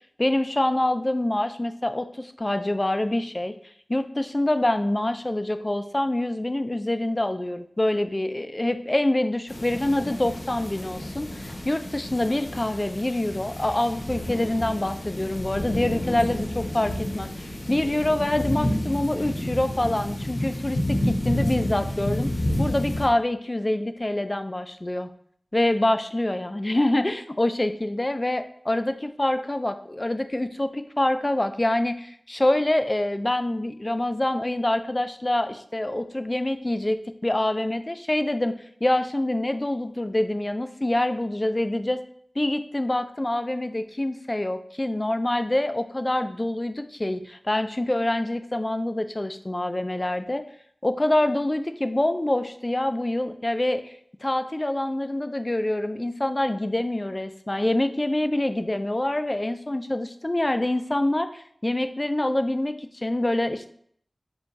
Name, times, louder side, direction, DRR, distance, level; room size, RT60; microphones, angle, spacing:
voice 1, 0.2-3.6 3.9-22.3 22.6-25.1 25.5-38.5 38.8-42.0 42.4-50.4 50.8-63.7, left 1 dB, 30° left, 9 dB, 0.3 m, -26 dB
sound 1, 9.5-23.1, left 1 dB, 90° left, 1.0 m, -30 dB
4.4 x 2.3 x 4.1 m, 0.63 s
wide cardioid pair, 70°, 0 cm